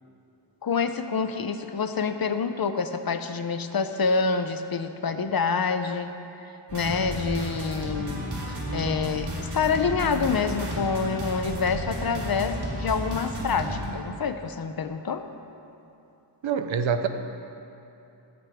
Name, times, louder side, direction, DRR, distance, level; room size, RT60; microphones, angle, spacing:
voice 1, 0.6-6.1 6.7-8.2 8.7-15.2, left 5 dB, 50° left, 9 dB, 0.7 m, -27 dB
sound 1, 6.7-13.8, right 1 dB, 55° right, 3.4 m, -32 dB
voice 2, 16.4-17.1, right 6 dB, 80° right, 7 dB, 0.9 m, -25 dB
15.5 x 14.5 x 3.6 m, 2.8 s
wide cardioid pair, 120°, 47 cm